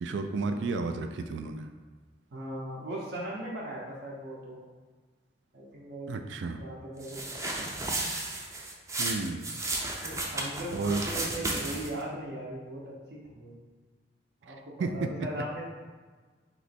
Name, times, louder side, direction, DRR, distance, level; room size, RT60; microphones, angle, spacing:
voice 1, 0.0-1.7 6.1-6.6 9.0-9.5 10.7-11.0 14.5-15.1, right 3 dB, 85° right, 7 dB, 0.4 m, -32 dB
voice 2, 2.3-4.6 5.5-6.1 6.6-7.7 10.0-13.6 14.4-15.7, right 1 dB, 65° right, -4 dB, 0.7 m, -39 dB
sound 1, 7.0-12.0, right 2 dB, 15° right, 0.5 m, -33 dB
3.2 x 3.0 x 4.2 m, 1.4 s
head